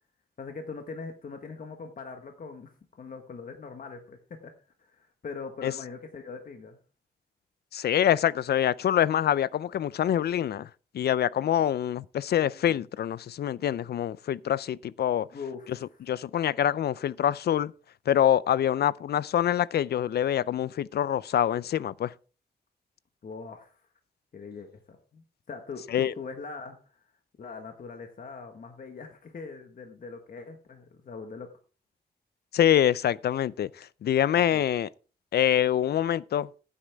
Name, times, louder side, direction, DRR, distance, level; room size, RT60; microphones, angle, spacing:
voice 1, 0.4-2.7 3.0-4.5 4.8-6.8 15.3-16.1 23.2-23.8 24.3-27.0 27.4-31.5 34.4-34.6, left 4 dB, 55° left, 1.4 m, -42 dB
voice 2, 7.7-10.7 10.9-15.3 16.1-17.7 18.1-22.1 25.9-26.1 32.5-34.9 35.3-36.5, left 10 dB, 80° left, 0.4 m, -25 dB
15.0 x 8.5 x 3.5 m
wide cardioid pair, 125°, 16 cm